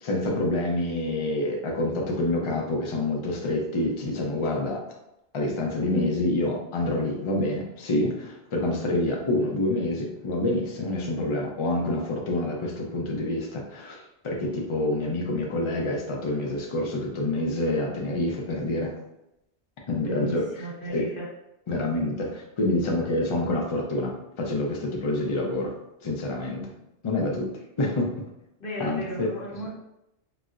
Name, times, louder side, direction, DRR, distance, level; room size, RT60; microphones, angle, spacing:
voice 1, 0.0-4.8 5.3-18.9 19.9-20.4 20.9-21.0 21.7-25.7 26.0-26.7 27.0-27.5 27.8-28.2 28.8-29.3, left 1 dB, 40° left, -1 dB, 0.5 m, -27 dB
voice 2, 20.0-21.3 28.6-29.7, right 1 dB, 55° left, -4 dB, 0.9 m, -35 dB
4.1 x 2.0 x 2.4 m, 0.87 s
omnidirectional pair, 1.1 m